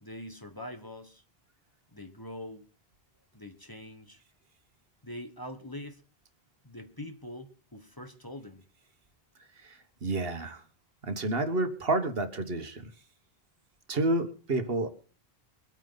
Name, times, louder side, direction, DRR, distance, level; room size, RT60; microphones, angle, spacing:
voice 1, 0.0-1.2 1.9-2.7 3.3-4.2 5.0-6.0 6.6-8.6, left 1 dB, 20° left, 7 dB, 1.4 m, -43 dB
voice 2, 9.6-10.6 11.0-12.9 13.9-14.9, right 2 dB, 65° right, 9 dB, 1.6 m, -30 dB
23.0 x 9.1 x 4.0 m, 0.37 s
omnidirectional pair, 1.0 m